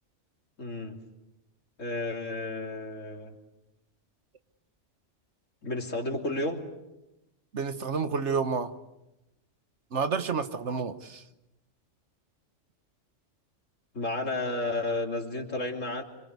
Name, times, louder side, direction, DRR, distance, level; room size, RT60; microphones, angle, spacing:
voice 1, 0.6-1.0 1.8-3.3 5.6-6.6 14.0-16.0, left 2 dB, 90° left, 2 dB, 3.4 m, -32 dB
voice 2, 7.5-8.7 9.9-11.2, right 5 dB, 65° right, 10 dB, 1.5 m, -29 dB
26.5 x 24.0 x 8.2 m, 0.95 s
omnidirectional pair, 1.3 m